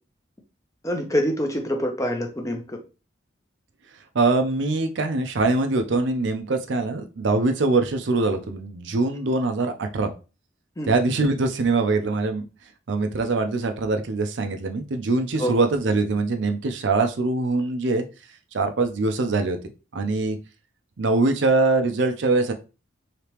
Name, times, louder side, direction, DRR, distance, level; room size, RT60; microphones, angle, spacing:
voice 1, 0.8-2.8 10.8-10.9 15.4-15.5, equal, 15° left, 3 dB, 0.6 m, -25 dB
voice 2, 4.1-10.1 10.9-12.4 12.9-18.0 18.5-19.6 19.9-20.4 21.0-22.5, right 3 dB, 65° right, 6 dB, 0.5 m, -23 dB
3.3 x 2.9 x 2.9 m, 0.31 s
head